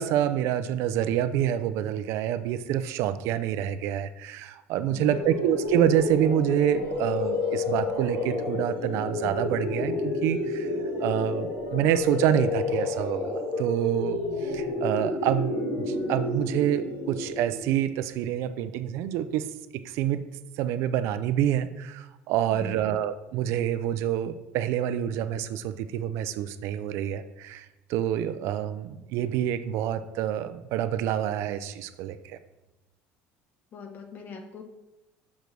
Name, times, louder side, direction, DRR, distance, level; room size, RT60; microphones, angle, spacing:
voice 1, 0.0-10.7 11.0-13.2 13.6-19.5 19.8-20.2 20.6-32.4, right 11 dB, 65° right, 11 dB, 0.6 m, -27 dB
voice 2, 4.9-5.3 22.4-22.9 33.7-34.6, left 5 dB, 40° left, 5 dB, 1.3 m, -42 dB
sound 1, 5.0-17.8, left 3 dB, 80° left, 3.0 m, -30 dB
6.3 x 5.2 x 6.1 m, 0.97 s
cardioid pair, 130°, 5 cm